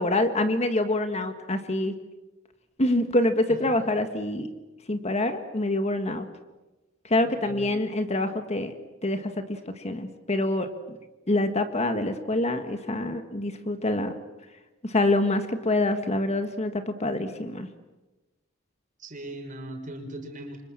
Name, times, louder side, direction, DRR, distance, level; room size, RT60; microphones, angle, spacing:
voice 1, 0.0-1.9 2.8-4.5 4.9-6.3 7.0-8.7 9.0-9.2 9.8-10.7 11.3-14.1 14.8-17.7, left 1 dB, 35° left, 8 dB, 1.7 m, -26 dB
voice 2, 7.3-7.7 19.0-20.6, right 1 dB, 40° right, 4 dB, 5.5 m, -39 dB
29.5 x 25.5 x 7.5 m, 1.1 s
head